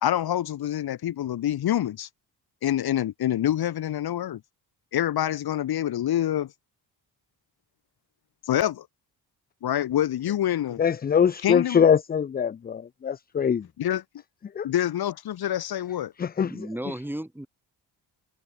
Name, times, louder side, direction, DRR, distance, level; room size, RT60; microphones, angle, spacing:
voice 1, 0.0-2.1 2.6-4.4 4.9-6.5 8.5-8.9 9.6-10.8 11.4-11.8 13.8-14.0 14.6-16.1, left 11 dB, 60° left, 1.4 m, -26 dB
voice 2, 10.8-13.7 14.6-14.7 16.2-16.7, left 7 dB, 25° left, 0.4 m, -23 dB
voice 3, 16.4-17.5, right 1 dB, 5° right, 3.2 m, -34 dB
wide cardioid pair, 165°, 41 cm